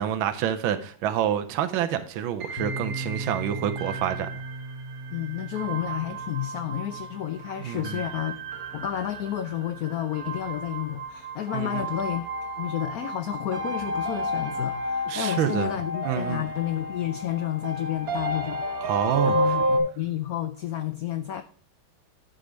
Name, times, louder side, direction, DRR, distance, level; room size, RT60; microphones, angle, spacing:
voice 1, 0.0-4.4 7.6-8.0 11.5-11.8 15.1-15.7 16.0-16.4 18.8-19.4, right 10 dB, 80° right, 1.5 m, -27 dB
sound 1, 2.4-19.8, right 1 dB, 50° right, 1.6 m, -32 dB
Piano, 2.6-10.0, right 1 dB, 15° right, 1.5 m, -39 dB
voice 2, 5.1-8.3 8.7-12.2 12.6-18.7 19.2-21.4, left 12 dB, 80° left, 0.8 m, -31 dB
10.0 x 4.9 x 5.0 m
omnidirectional pair, 2.2 m